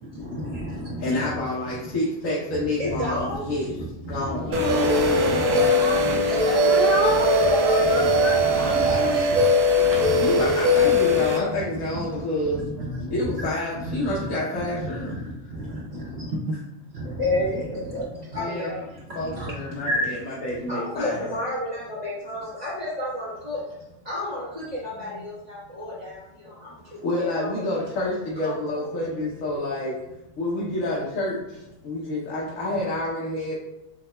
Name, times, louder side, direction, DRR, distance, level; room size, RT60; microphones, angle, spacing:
voice 1, 0.1-1.4 1.7-1.8 2.5-3.0 3.6-5.7 6.0-6.2 7.8-9.4 9.9-10.9 11.5-12.2 12.5-13.5 13.8-16.5 16.9-18.1 19.1-20.2, equal, 55° right, -4 dB, 1.0 m, -32 dB
voice 2, 1.0-3.7 4.0-4.7 8.5-9.3 10.2-12.6 13.1-15.2 18.4-18.7 19.1-21.3 25.0-25.1 26.4-26.6 27.0-30.0 30.4-33.6, left 1 dB, 75° left, -6 dB, 1.3 m, -28 dB
voice 3, 2.8-3.5 4.7-8.5 17.9-18.8 19.7-19.9 20.5-23.6 24.0-27.7 28.4-28.5, left 1 dB, 30° right, -11 dB, 1.4 m, -32 dB
Speech, 4.4-6.0 6.6-10.7, left 1 dB, 15° right, 0.5 m, -28 dB
sound 1, 4.5-11.4, left 1 dB, 80° right, 1.1 m, -20 dB
7.4 x 2.8 x 2.2 m, 0.96 s
omnidirectional pair, 1.4 m